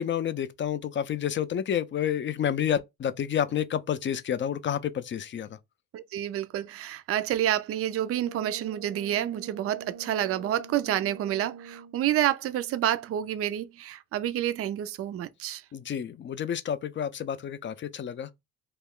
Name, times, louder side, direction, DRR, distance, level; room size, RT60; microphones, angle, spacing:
voice 1, 0.0-5.6 15.7-18.3, left 9 dB, 40° left, 0.4 m, -29 dB
voice 2, 5.9-15.6, right 11 dB, 50° right, 0.4 m, -29 dB
Brass instrument, 7.7-12.1, right 6 dB, 85° right, 0.9 m, -45 dB
2.4 x 2.2 x 3.5 m
cardioid pair, 90°, 30 cm